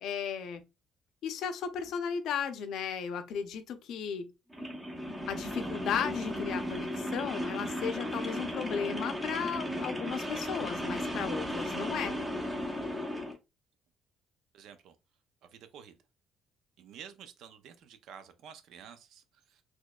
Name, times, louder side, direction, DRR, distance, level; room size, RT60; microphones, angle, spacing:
voice 1, 0.0-0.6 1.2-4.3 5.3-12.2, left 7 dB, 65° left, 0.6 m, -35 dB
sound 1, 4.5-13.4, equal, 15° right, 0.7 m, -35 dB
voice 2, 14.5-15.0 15.4-16.0 16.8-19.6, right 8 dB, 65° right, 0.5 m, -51 dB
4.1 x 3.0 x 2.3 m
cardioid pair, 165°, 0 cm